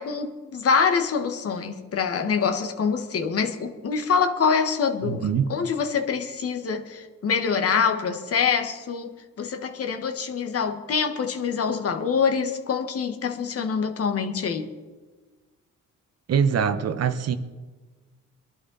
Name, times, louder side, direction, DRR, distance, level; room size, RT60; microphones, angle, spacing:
voice 1, 0.0-5.2 5.5-14.7, left 6 dB, 50° left, 1.5 m, -25 dB
voice 2, 5.0-5.5 16.3-17.4, right 7 dB, 55° right, 1.1 m, -23 dB
23.0 x 11.5 x 4.1 m
cardioid pair, 90°, 30 cm